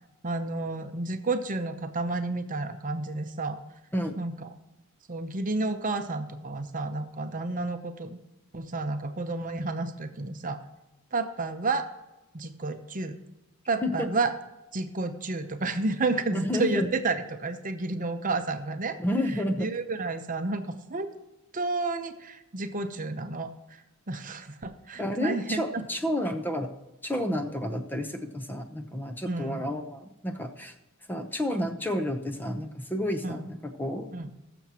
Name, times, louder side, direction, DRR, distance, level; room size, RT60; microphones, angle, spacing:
voice 1, 0.2-3.6 4.2-4.5 5.1-8.2 8.5-10.6 11.1-11.9 12.3-13.2 13.7-14.3 14.7-19.0 19.6-21.1 21.5-23.8 24.1-25.8 29.3-29.6 33.2-33.4 34.1-34.3, right 3 dB, 40° right, 7 dB, 0.8 m, -31 dB
voice 2, 3.9-4.2 13.8-14.1 16.3-16.9 19.0-19.7 25.0-26.7 27.0-30.7 31.1-34.1, left 1 dB, 10° left, 6 dB, 0.8 m, -30 dB
20.5 x 6.9 x 2.9 m, 1.0 s
head